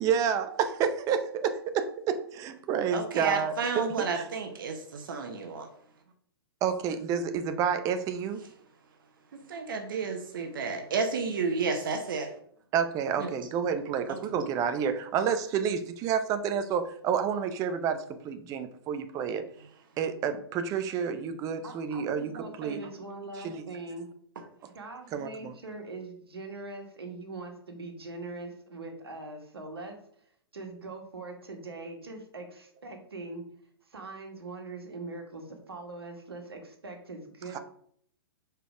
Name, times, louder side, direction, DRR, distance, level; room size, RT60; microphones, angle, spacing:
voice 1, 0.0-3.5 4.1-4.2 6.6-8.4 12.7-19.5 20.0-22.8 23.4-23.6 25.1-25.5 37.5-37.6, right 7 dB, 25° right, 0.7 m, -29 dB
voice 2, 2.9-5.7 9.5-12.3 13.2-13.3 14.1-14.2, right 4 dB, 55° right, 1.0 m, -31 dB
voice 3, 21.6-24.1 24.7-30.0 30.5-33.4 33.9-37.6, right 3 dB, 70° right, 1.6 m, -42 dB
5.0 x 4.6 x 4.9 m
figure-of-eight pair, 110°, 13 cm